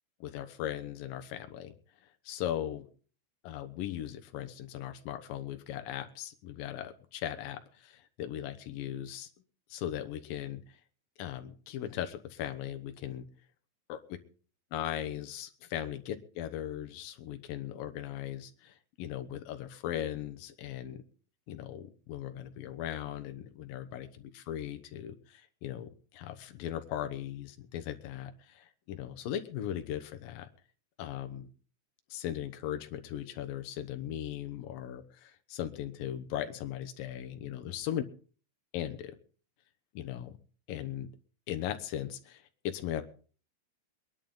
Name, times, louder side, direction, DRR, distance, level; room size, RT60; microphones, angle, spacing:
voice 1, 0.2-1.7 2.3-2.9 3.4-9.3 9.7-10.6 11.2-13.3 13.9-14.0 14.7-21.0 21.5-30.5 31.0-31.5 32.1-38.0 38.7-39.2 39.9-40.4 40.7-41.1 41.5-43.0, left 11 dB, 85° left, 7 dB, 2.8 m, -38 dB
23.5 x 11.0 x 3.9 m, 0.41 s
omnidirectional pair, 3.9 m